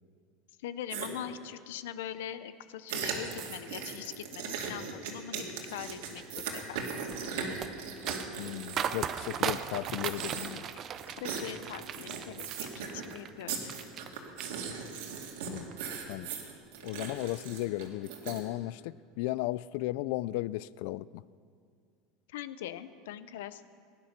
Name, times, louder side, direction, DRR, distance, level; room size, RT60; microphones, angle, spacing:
voice 1, 0.6-6.9 11.2-12.7 12.9-13.7 22.3-23.6, left 11 dB, 90° left, 13 dB, 0.7 m, -42 dB
sound 1, 0.9-1.1 2.9-9.6 9.9-10.7 11.0-11.4 11.8-13.1 13.5-18.4, right 6 dB, 80° right, 2.3 m, -38 dB
sound 2, 5.8-14.1 14.4-15.1 15.5-15.7, right 9 dB, 30° right, 0.5 m, -38 dB
voice 2, 8.4-10.7 15.5-15.7 16.1-16.3 16.8-21.1, left 17 dB, 65° left, 20 dB, 0.3 m, -35 dB
18.0 x 11.0 x 5.9 m, 2.3 s
supercardioid pair, 150°, 0 cm